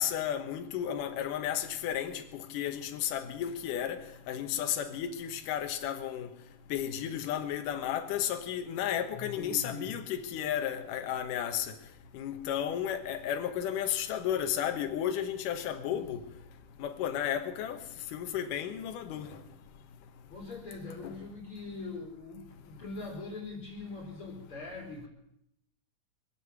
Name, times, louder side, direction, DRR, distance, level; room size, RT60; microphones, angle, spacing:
voice 1, 0.0-4.0 4.3-6.3 6.7-11.7 12.1-16.2 16.8-17.8 18.1-19.4 21.0-21.1, left 10 dB, 70° left, 2.5 m, -33 dB
voice 2, 9.1-9.9 15.9-16.1 20.3-25.1, left 3 dB, 35° left, 3.8 m, -42 dB
24.5 x 8.3 x 7.0 m
omnidirectional pair, 4.4 m